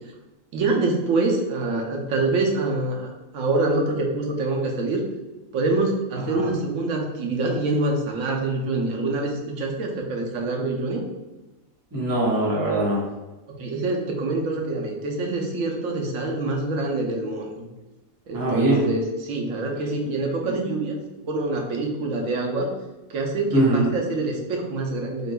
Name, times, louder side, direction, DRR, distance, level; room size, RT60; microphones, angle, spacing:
voice 1, 0.5-5.0 5.5-11.0 13.5-17.6 18.3-22.7 23.1-25.3, right 2 dB, 70° right, 1 dB, 1.1 m, -25 dB
voice 2, 11.9-13.0 18.3-18.9 23.5-23.9, right 1 dB, 15° right, -4 dB, 0.8 m, -22 dB
6.8 x 2.5 x 2.2 m, 1.1 s
omnidirectional pair, 1.5 m